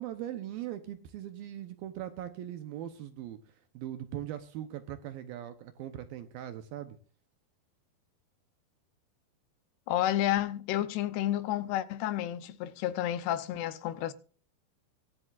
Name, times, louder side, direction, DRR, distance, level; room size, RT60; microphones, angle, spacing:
voice 1, 0.0-3.4 3.7-7.0, right 12 dB, 75° right, 2.3 m, -40 dB
voice 2, 9.9-14.1, left 13 dB, 80° left, 2.7 m, -30 dB
23.0 x 7.6 x 2.5 m
omnidirectional pair, 4.9 m